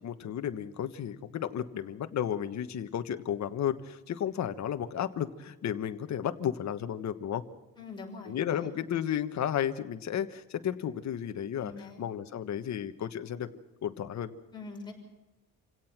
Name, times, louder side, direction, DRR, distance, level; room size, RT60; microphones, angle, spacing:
voice 1, 0.0-7.4 8.3-11.7 12.0-13.5 13.8-14.3, left 9 dB, 50° left, 9 dB, 1.4 m, -33 dB
voice 2, 7.8-8.7 11.6-12.0 14.5-14.9, left 3 dB, 10° left, -1 dB, 6.0 m, -44 dB
27.5 x 17.0 x 6.0 m, 1.1 s
cardioid pair, 155°, 36 cm